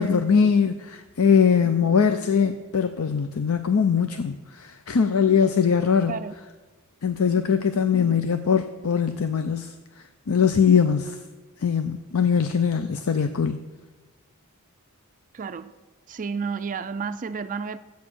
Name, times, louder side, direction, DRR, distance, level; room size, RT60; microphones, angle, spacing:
voice 1, 0.0-6.1 7.0-9.7 10.3-11.2 11.6-13.6, left 6 dB, 70° left, 0.5 m, -21 dB
voice 2, 15.3-15.7 16.1-17.8, right 5 dB, 35° right, 0.4 m, -31 dB
12.0 x 8.3 x 6.2 m
head